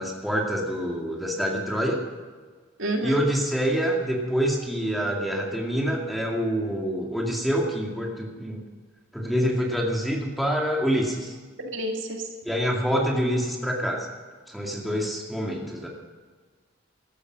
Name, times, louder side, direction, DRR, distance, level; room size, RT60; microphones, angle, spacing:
voice 1, 0.0-2.0 3.0-8.6 9.1-11.3 12.4-14.1 14.5-15.9, equal, ahead, -1 dB, 2.2 m, -26 dB
voice 2, 2.8-3.2 11.6-12.2, right 1 dB, 75° right, 2 dB, 2.2 m, -29 dB
14.5 x 12.5 x 6.2 m, 1.5 s
head